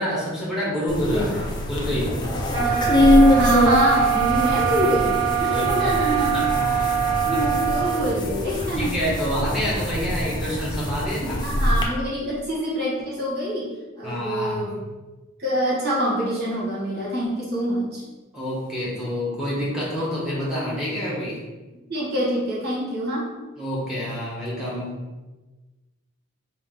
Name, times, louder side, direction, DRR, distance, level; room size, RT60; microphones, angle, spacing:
voice 1, 0.0-2.3 5.5-5.9 6.3-6.9 7.3-7.4 8.7-11.5 14.0-14.6 18.3-21.4 23.6-24.9, equal, 5° right, -7 dB, 1.1 m, -27 dB
sound 1, 0.9-11.8, left 1 dB, 20° left, 0.4 m, -23 dB
sound 2, 2.5-8.1, right 9 dB, 25° right, 0.9 m, -23 dB
voice 2, 2.5-6.4 7.2-8.9 11.4-13.7 14.0-14.8 15.4-18.0 21.9-23.3, equal, 50° right, -6 dB, 1.3 m, -25 dB
3.7 x 2.7 x 3.7 m, 1.2 s
head